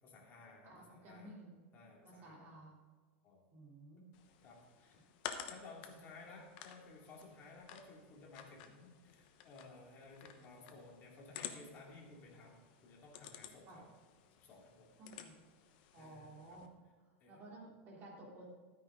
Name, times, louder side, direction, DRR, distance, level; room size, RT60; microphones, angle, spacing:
voice 1, 0.0-1.3 1.7-2.5 3.2-3.4 4.4-5.0 5.5-13.9 14.4-14.9 15.9-16.6 17.2-17.4, left 3 dB, 30° left, -1 dB, 2.5 m, -57 dB
voice 2, 0.6-1.6 2.0-2.8 3.5-4.1 13.7-13.8 15.0-15.3 15.9-16.7 17.3-18.5, right 2 dB, 30° right, -3 dB, 3.1 m, -54 dB
sound 1, 4.1-16.7, left 9 dB, 50° left, 1.0 m, -53 dB
13.0 x 9.4 x 3.8 m, 1.4 s
supercardioid pair, 160°, 7 cm